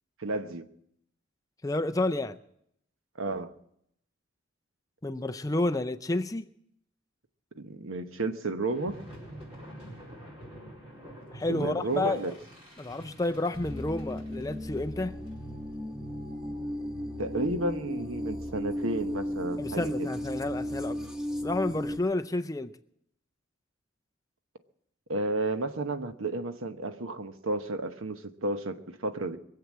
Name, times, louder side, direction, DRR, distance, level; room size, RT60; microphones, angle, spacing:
voice 1, 0.2-0.7 3.2-3.5 7.6-9.0 11.5-12.3 17.2-20.1 25.1-29.4, right 2 dB, 85° right, 1.1 m, -32 dB
voice 2, 1.6-2.4 5.0-6.5 11.3-12.3 12.8-15.2 19.6-21.0 21.4-22.7, left 2 dB, 15° left, 0.5 m, -30 dB
sound 1, 8.7-19.3, equal, 30° right, 4.4 m, -49 dB
sound 2, 13.5-22.0, equal, 5° right, 1.0 m, -35 dB
22.5 x 8.0 x 7.5 m
head